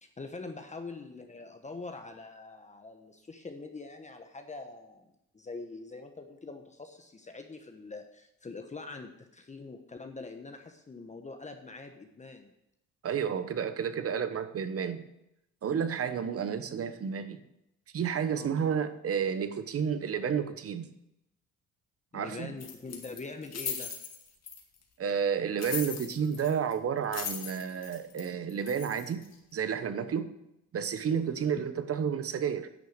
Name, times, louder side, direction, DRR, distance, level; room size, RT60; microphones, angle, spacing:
voice 1, 0.0-12.5 16.1-16.2 18.3-18.5 22.1-23.9 31.3-31.5, left 3 dB, 25° left, 5 dB, 1.0 m, -44 dB
voice 2, 13.0-15.0 15.6-17.4 17.9-20.9 22.1-22.5 25.0-29.2 29.5-30.3 30.7-32.7, right 7 dB, 50° right, 10 dB, 1.0 m, -31 dB
sound 1, 22.6-24.8 25.6-26.7 27.0-29.3, left 6 dB, 60° left, 2.2 m, -39 dB
10.5 x 6.5 x 6.6 m, 0.84 s
cardioid pair, 90°, 30 cm